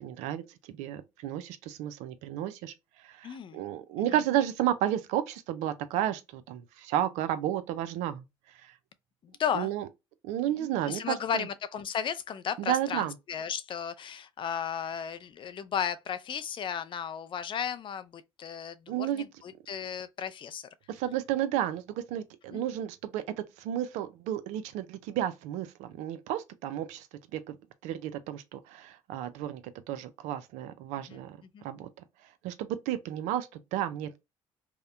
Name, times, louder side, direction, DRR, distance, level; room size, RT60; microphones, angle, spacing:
voice 1, 0.0-2.7 3.0-8.2 8.6-8.7 9.5-9.8 10.2-11.5 12.6-13.1 18.9-19.2 20.9-23.2 23.6-27.1 27.3-27.6 27.8-31.9 32.4-34.2, right 11 dB, 85° right, 0.4 m, -32 dB
voice 2, 3.2-3.6 4.0-4.1 9.2-9.7 10.6-20.7 22.5-22.6 31.1-31.2 31.5-31.6, left 8 dB, 45° left, 0.4 m, -35 dB
2.8 x 2.1 x 2.3 m
supercardioid pair, 80°, 12 cm